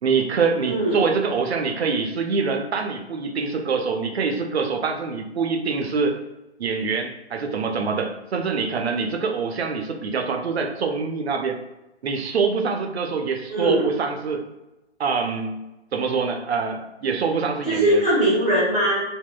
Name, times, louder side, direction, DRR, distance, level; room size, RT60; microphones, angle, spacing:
voice 1, 0.0-6.2 6.6-11.6 12.0-14.4 15.0-15.6 15.9-18.0, right 5 dB, 70° right, 4 dB, 0.6 m, -25 dB
voice 2, 0.7-1.0 13.5-13.9 17.7-19.0, right 1 dB, ahead, -18 dB, 0.5 m, -20 dB
3.5 x 2.2 x 2.2 m, 0.99 s
figure-of-eight pair, 140°, 33 cm